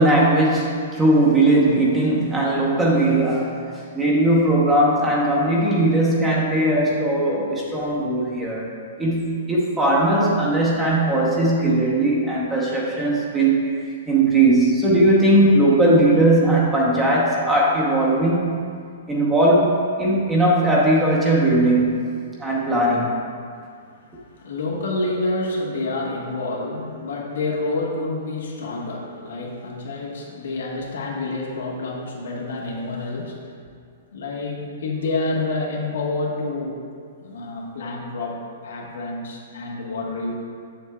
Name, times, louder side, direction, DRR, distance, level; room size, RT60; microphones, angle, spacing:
voice 1, 0.0-8.7 9.0-13.8 14.1-18.5 19.1-22.1 22.4-23.2, right 1 dB, 10° right, -4 dB, 0.8 m, -19 dB
voice 2, 23.7-33.5 34.1-36.8 37.2-40.3, left 2 dB, 85° left, -2 dB, 1.3 m, -28 dB
7.2 x 7.0 x 2.3 m, 2.2 s
hypercardioid pair, 165°, 0 cm